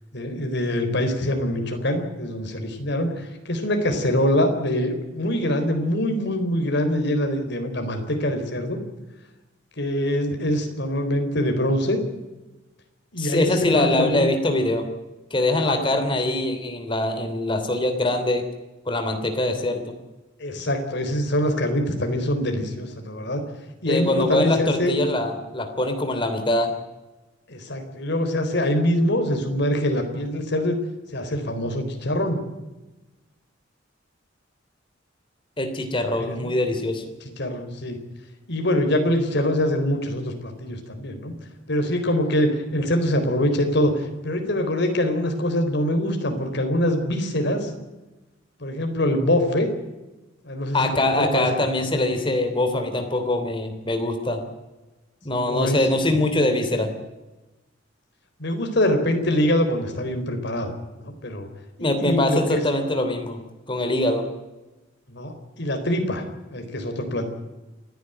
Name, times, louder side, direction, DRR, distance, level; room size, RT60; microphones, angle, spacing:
voice 1, 0.1-8.8 9.8-12.0 13.1-14.3 15.6-15.9 20.4-23.4 23.8-25.0 27.5-30.8 31.1-32.4 36.2-36.5 37.4-38.0 38.5-41.3 41.7-47.7 48.6-49.7 50.4-51.6 55.3-56.2 58.4-60.7 61.0-61.5 62.0-62.6 65.1-66.2 66.5-67.3, left 1 dB, 65° left, 5 dB, 4.1 m, -24 dB
voice 2, 13.2-14.9 15.3-18.5 18.8-19.8 23.9-26.7 35.6-37.0 50.7-54.4 55.2-56.9 61.8-63.4 63.7-64.3, left 1 dB, 25° left, 6 dB, 3.1 m, -23 dB
28.5 x 10.5 x 9.2 m, 1.1 s
head